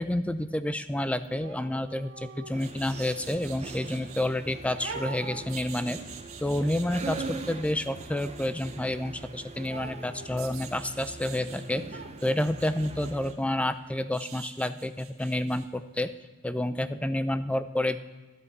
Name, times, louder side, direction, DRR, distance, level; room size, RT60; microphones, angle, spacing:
voice 1, 0.0-6.0 6.4-16.1 16.4-18.0, left 1 dB, 5° left, 12 dB, 0.4 m, -29 dB
sound 1, 1.2-4.3 4.8-8.8 9.6-11.6 11.9-15.7 16.0-16.1, right 5 dB, 70° right, 1.5 m, -45 dB
sound 2, 2.5-13.3, right 3 dB, 30° right, 0.7 m, -42 dB
12.5 x 11.0 x 4.7 m, 1.2 s
head